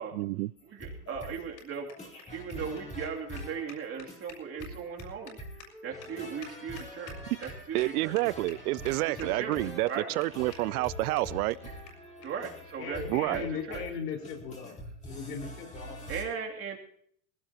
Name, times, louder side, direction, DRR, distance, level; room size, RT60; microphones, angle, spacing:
voice 1, 0.1-0.5 7.3-7.4 7.7-9.9 10.2-11.6 13.1-13.5, right 20 dB, 70° right, 21 dB, 0.6 m, -29 dB
sound 1, 0.6-16.2, equal, 15° left, 3.9 m, -45 dB
voice 2, 0.6-5.4 5.8-8.1 9.0-10.1 12.2-13.0 13.3-13.4 13.7-13.8 16.1-16.8, right 6 dB, 30° right, 0 dB, 2.9 m, -38 dB
sound 2, 0.8-7.5 7.8-7.9 8.1-8.6 8.8-9.6 9.9-10.0 10.2-10.3 10.5-10.6 10.8-10.9 11.2-11.3 11.5-11.6 11.9-12.0 12.2-12.3 13.1-13.3, left 5 dB, 45° left, 6.6 m, -49 dB
Wind instrument woodwind instrument, 2.7-7.7 8.4-13.4, equal, 5° right, 3.8 m, -52 dB
voice 3, 12.8-14.7 15.0-16.2, left 6 dB, 85° left, 2 dB, 4.9 m, -38 dB
19.5 x 17.5 x 2.9 m, 0.65 s
supercardioid pair, 130°, 46 cm